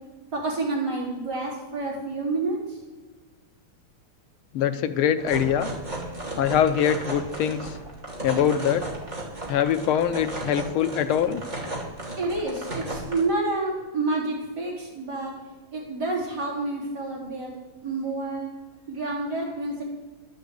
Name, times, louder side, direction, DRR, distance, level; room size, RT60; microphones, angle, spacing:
voice 1, 0.3-2.8 12.2-15.3 15.7-17.5 17.8-18.5 18.9-19.8, right 2 dB, 50° right, -4 dB, 4.8 m, -29 dB
voice 2, 4.5-5.7 6.4-7.8 8.2-8.9 9.5-11.4, left 9 dB, 80° left, 10 dB, 1.6 m, -23 dB
sound 1, 5.2-13.2, right 2 dB, 20° right, 2.7 m, -34 dB
12.0 x 7.9 x 8.3 m, 1.3 s
omnidirectional pair, 2.3 m